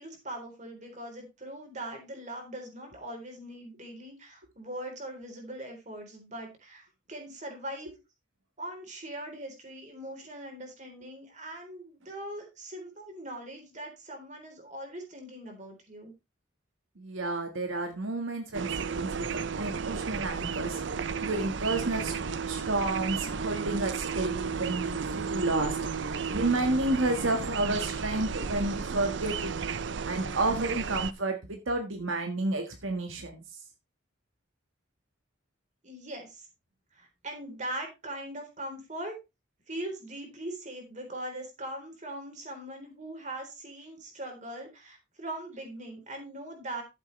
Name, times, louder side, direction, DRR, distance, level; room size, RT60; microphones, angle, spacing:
voice 1, 0.0-7.9 8.6-16.1 35.8-36.5 36.9-39.2 39.7-46.8, right 1 dB, 35° right, 3 dB, 3.9 m, -41 dB
voice 2, 17.0-22.1 22.5-29.5 30.0-33.4, right 2 dB, 80° right, 4 dB, 1.7 m, -31 dB
sound 1, 18.5-31.1, right 6 dB, 60° right, 0.6 m, -33 dB
13.0 x 7.7 x 3.3 m, 0.25 s
head